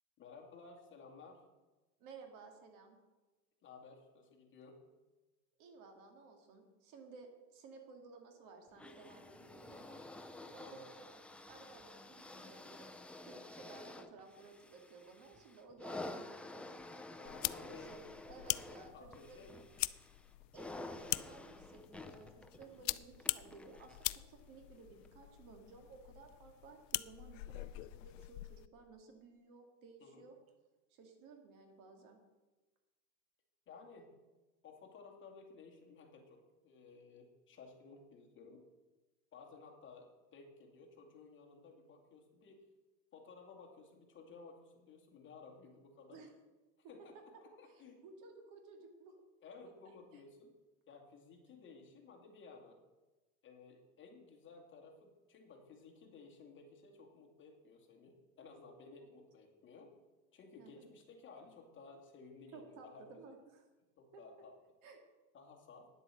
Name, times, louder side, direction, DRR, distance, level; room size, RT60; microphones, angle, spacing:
voice 1, 0.2-1.4 3.6-4.8 10.6-10.9 17.2-18.0 18.9-19.6 30.0-30.2 33.7-34.1 34.6-38.6 39.3-42.6 43.1-46.2 46.9-47.1 47.4-48.0 49.4-50.5 50.9-52.8 53.4-59.9 60.3-63.3 64.0-64.5 65.3-65.9, left 4 dB, 30° left, 2 dB, 2.2 m, -56 dB
voice 2, 2.0-3.0 5.6-10.0 10.5-11.1 11.5-12.9 13.3-16.8 17.6-19.5 20.5-30.3 30.9-32.2 46.1-46.3 46.8-46.9 47.7-49.2 49.8-50.2 60.6-60.9 62.5-63.6 64.1-64.2 64.8-65.0, right 4 dB, 60° right, 4 dB, 2.5 m, -56 dB
sound 1, 8.8-24.2 25.0-25.1, left 2 dB, 5° left, 0.4 m, -50 dB
sound 2, 17.3-28.7, left 20 dB, 90° left, 0.5 m, -43 dB
10.0 x 8.0 x 7.6 m, 1.2 s
supercardioid pair, 140°, 37 cm